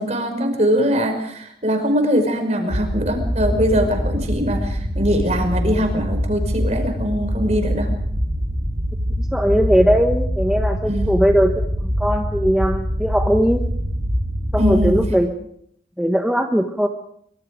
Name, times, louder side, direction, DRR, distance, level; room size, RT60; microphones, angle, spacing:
voice 1, 0.0-7.9 10.8-11.2 14.6-15.0, equal, 40° right, 5 dB, 5.3 m, -21 dB
sound 1, 2.7-15.1, equal, 55° right, 3.8 m, -24 dB
voice 2, 9.2-11.7 12.0-13.6 14.5-15.3 16.0-16.9, equal, 5° right, 3 dB, 1.4 m, -19 dB
25.0 x 24.0 x 5.2 m, 0.67 s
head